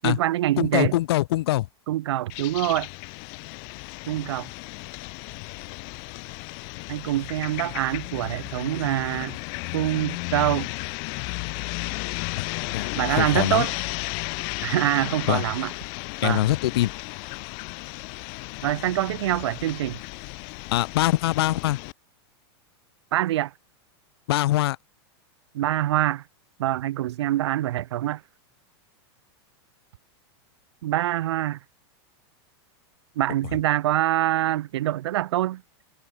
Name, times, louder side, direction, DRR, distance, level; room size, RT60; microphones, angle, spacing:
voice 1, 0.0-0.9 1.9-2.9 4.1-4.5 6.9-9.4 9.7-10.7 13.0-13.7 14.6-15.7 16.2-16.4 18.6-20.0 23.1-23.5 25.5-26.2 26.6-28.2 30.8-31.6 33.2-35.6, right 14 dB, 85° right, 0.4 m, -25 dB
voice 2, 0.6-1.7 12.4-12.5 12.7-13.7 15.3-15.4 16.2-16.9 20.7-21.8 24.3-24.8, left 16 dB, 65° left, 0.6 m, -23 dB
sound 1, 2.3-21.9, left 40 dB or more, 40° left, 0.9 m, -34 dB
supercardioid pair, 165°, 14 cm